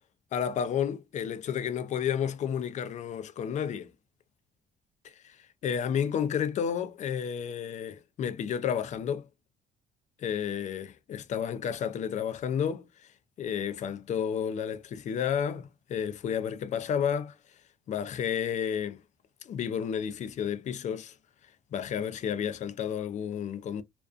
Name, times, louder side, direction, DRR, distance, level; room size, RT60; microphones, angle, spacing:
voice 1, 0.3-3.9 5.0-9.3 10.2-13.1 13.4-17.4 17.9-19.0 19.4-21.2 21.7-23.8, left 8 dB, 45° left, 0.5 m, -31 dB
2.4 x 2.3 x 2.4 m
cardioid pair, 110°, 17 cm